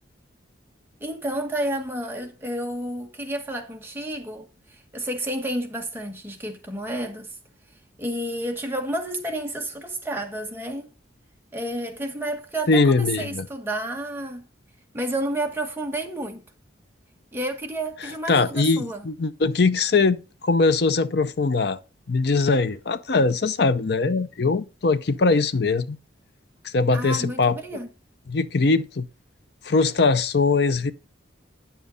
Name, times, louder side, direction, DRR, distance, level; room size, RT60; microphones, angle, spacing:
voice 1, 1.0-7.3 8.0-10.9 11.5-14.5 14.9-16.4 17.3-19.1 26.9-27.9, right 1 dB, 10° right, 1.2 m, -30 dB
voice 2, 12.7-13.5 18.0-21.8 22.1-26.0 26.6-27.6 28.3-29.1 29.6-30.9, left 3 dB, 55° left, 0.6 m, -21 dB
9.1 x 7.3 x 3.9 m
head